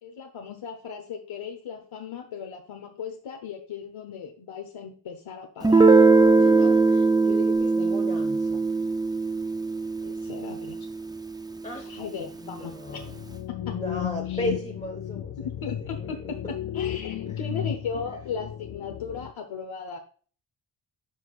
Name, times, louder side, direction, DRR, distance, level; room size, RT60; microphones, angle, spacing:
voice 1, 0.0-6.8 10.0-10.8 11.8-13.0 13.5-13.8 14.3-14.4 15.4-16.4 16.7-20.0, left 6 dB, 90° left, 4 dB, 1.0 m, -37 dB
Guitar, 5.6-11.1, right 3 dB, 10° right, 0.4 m, -20 dB
voice 2, 6.4-8.7 11.6-11.9 12.4-13.2 13.6-15.5 15.8-16.1 16.4-16.5 17.3-17.4 18.0-18.1, left 1 dB, 15° left, 0 dB, 1.1 m, -36 dB
sound 1, 12.9-19.3, left 11 dB, 60° left, 0.6 m, -34 dB
11.0 x 5.7 x 2.4 m, 0.43 s
wide cardioid pair, 120°, 47 cm